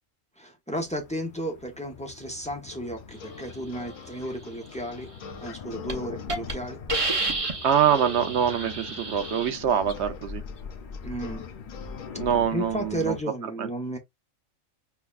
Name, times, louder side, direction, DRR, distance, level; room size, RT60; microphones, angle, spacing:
voice 1, 0.4-5.1 5.4-6.8 11.0-11.5 12.5-14.0, right 1 dB, 10° left, 0.4 m, -33 dB
sound 1, 0.7-13.2, left 6 dB, 50° left, 0.6 m, -42 dB
sound 2, 2.5-12.1, left 7 dB, 90° left, 1.1 m, -45 dB
Hiss, 5.3-5.5 5.9-6.0 6.3-6.5 6.9-9.5, right 2 dB, 30° right, 0.7 m, -30 dB
voice 2, 7.6-10.4 12.2-13.1 13.6-13.7, right 8 dB, 65° right, 0.8 m, -24 dB
5.5 x 2.2 x 2.3 m
omnidirectional pair, 1.4 m